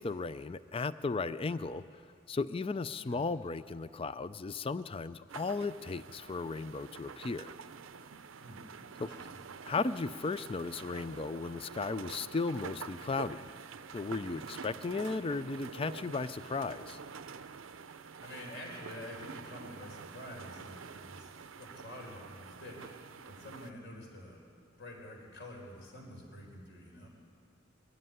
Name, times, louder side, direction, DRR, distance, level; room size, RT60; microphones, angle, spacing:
voice 1, 0.0-1.8 2.3-7.5 9.0-9.1 9.6-13.5 13.9-17.0, left 3 dB, 25° left, 15 dB, 0.4 m, -35 dB
sound 1, 5.3-23.7, right 5 dB, 70° right, 0.6 m, -47 dB
voice 2, 17.9-22.9 23.3-24.5 24.8-27.1, left 1 dB, 55° left, 1 dB, 4.2 m, -48 dB
22.5 x 13.0 x 9.5 m, 2.4 s
head